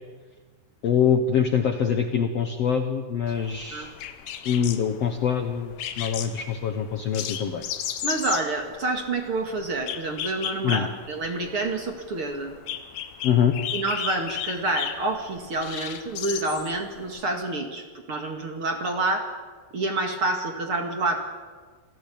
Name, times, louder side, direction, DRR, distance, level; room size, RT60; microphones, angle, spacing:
voice 1, 0.8-3.9 4.4-7.6 10.6-10.9 13.2-13.5, left 7 dB, 90° left, 6 dB, 1.3 m, -24 dB
sound 1, 3.3-17.3, left 10 dB, 75° left, 3.0 m, -35 dB
voice 2, 8.0-12.5 13.7-19.3 19.7-21.2, right 2 dB, 40° right, 4 dB, 2.3 m, -28 dB
27.5 x 17.0 x 8.6 m, 1.5 s
omnidirectional pair, 4.7 m